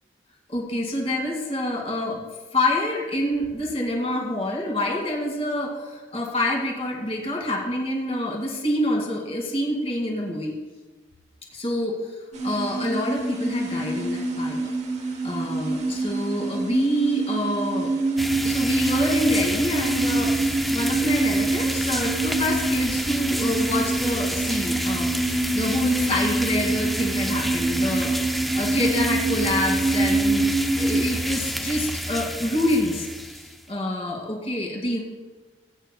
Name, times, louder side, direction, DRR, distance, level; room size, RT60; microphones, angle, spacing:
voice 1, 0.5-2.2 2.5-10.5 11.5-14.7 15.2-17.9 18.4-30.5 30.8-35.0, left 1 dB, 30° left, 0 dB, 2.2 m, -27 dB
sound 1, 12.3-31.0, right 2 dB, 35° right, 1.2 m, -26 dB
sound 2, 18.2-33.7, equal, ahead, 0.4 m, -30 dB
21.0 x 9.2 x 2.3 m, 1.3 s
head